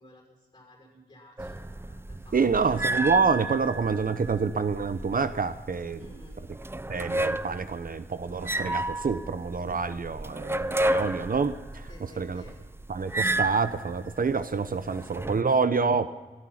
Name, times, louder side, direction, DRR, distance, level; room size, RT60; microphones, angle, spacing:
voice 1, 0.0-2.6 6.0-6.4 11.9-12.6, left 1 dB, 25° left, 1 dB, 6.5 m, -53 dB
sound 1, 1.4-15.4, right 1 dB, 15° right, 0.5 m, -32 dB
voice 2, 2.3-6.0 6.9-11.9 12.2-12.4 12.9-16.1, right 5 dB, 55° right, 12 dB, 0.8 m, -27 dB
16.5 x 13.0 x 5.8 m, 1.3 s
wide cardioid pair, 70°, 17 cm